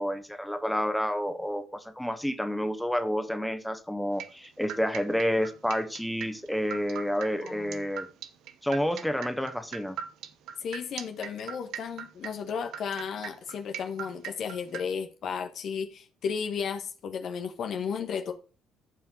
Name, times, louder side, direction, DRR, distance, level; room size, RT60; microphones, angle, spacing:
voice 1, 0.0-8.1 8.6-10.0, equal, 5° left, 1.8 m, -29 dB
sound 1, 4.2-14.8, right 9 dB, 60° right, 1.0 m, -39 dB
voice 2, 7.4-7.8 10.6-18.3, left 6 dB, 55° left, 1.4 m, -34 dB
15.0 x 5.6 x 4.8 m
figure-of-eight pair, 45°, 0 cm